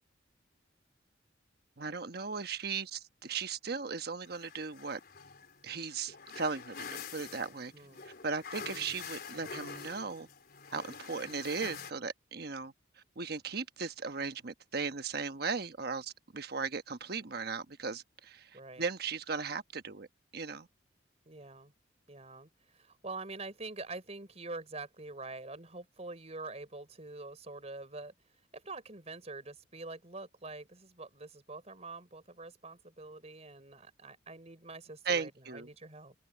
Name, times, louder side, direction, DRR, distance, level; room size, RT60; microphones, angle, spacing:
voice 1, 1.8-5.0 5.6-7.7 8.0-10.3 10.7-12.7 13.2-20.1 20.3-20.7 35.0-35.7, right 5 dB, 55° right, 1.2 m, -37 dB
sound 1, 4.2-11.9, left 6 dB, 55° left, 3.8 m, -46 dB
voice 2, 18.5-18.8 21.3-21.7 22.1-28.1 28.5-36.1, right 3 dB, 35° right, 4.5 m, -45 dB
head